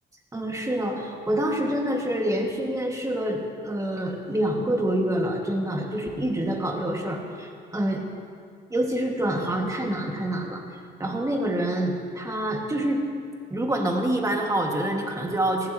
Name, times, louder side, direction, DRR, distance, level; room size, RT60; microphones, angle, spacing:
voice 1, 0.3-8.0 8.7-10.6 11.0-13.1 13.5-15.7, right 1 dB, 15° right, 0 dB, 2.4 m, -26 dB
19.5 x 15.5 x 3.2 m, 2.2 s
cardioid pair, 90°, 20 cm